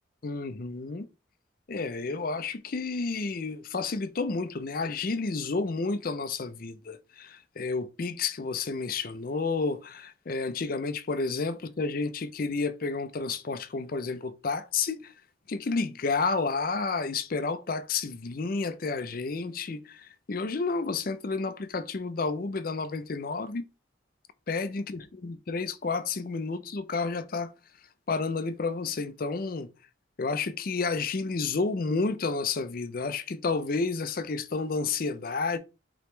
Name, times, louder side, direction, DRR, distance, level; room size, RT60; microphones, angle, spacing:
voice 1, 0.2-1.1 1.7-15.1 15.5-23.7 24.5-27.5 28.1-29.7 30.2-35.6, left 4 dB, 45° left, 0.5 m, -31 dB
4.9 x 3.0 x 3.2 m
head